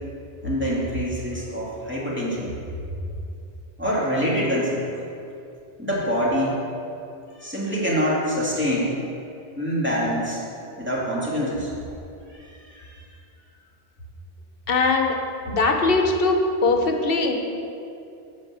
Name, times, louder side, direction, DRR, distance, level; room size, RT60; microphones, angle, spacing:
voice 1, 0.4-2.5 3.8-4.9 5.8-6.6 7.4-9.0 9.6-10.4 10.8-11.7 12.7-12.9, equal, 10° right, -7 dB, 2.1 m, -25 dB
voice 2, 14.7-15.1 15.5-17.3, left 3 dB, 65° left, 3 dB, 1.1 m, -21 dB
9.5 x 4.4 x 7.5 m, 2.6 s
omnidirectional pair, 1.1 m